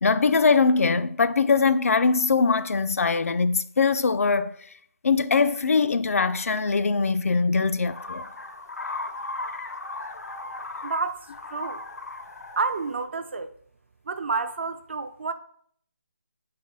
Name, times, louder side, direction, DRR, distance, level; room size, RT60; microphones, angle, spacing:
voice 1, 0.0-4.6 5.0-8.3, left 4 dB, 65° left, 0.3 m, -22 dB
sound 1, 7.9-13.0, left 2 dB, 85° left, 0.7 m, -37 dB
voice 2, 10.8-11.3 11.5-11.8 12.6-13.5 14.1-15.3, right 4 dB, 45° right, 0.4 m, -29 dB
4.2 x 3.3 x 3.7 m
figure-of-eight pair, 170°, 8 cm